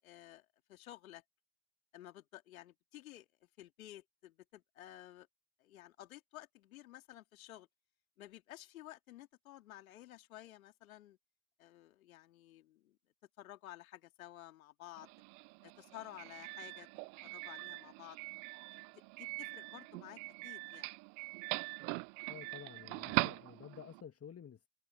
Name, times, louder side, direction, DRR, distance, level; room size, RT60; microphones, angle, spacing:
voice 1, 0.0-1.2 1.9-3.3 3.6-5.3 5.6-7.7 8.2-11.2 11.6-13.0 13.4-15.1 15.6-16.9 17.2-18.2 18.7-18.9 19.2-20.9, left 14 dB, 80° left, 2.7 m, -53 dB
Doorbell, 15.0-24.0, right 33 dB, 65° right, 0.9 m, -42 dB
voice 2, 22.3-24.7, left 8 dB, 35° left, 2.0 m, -51 dB
hypercardioid pair, 55°, 42 cm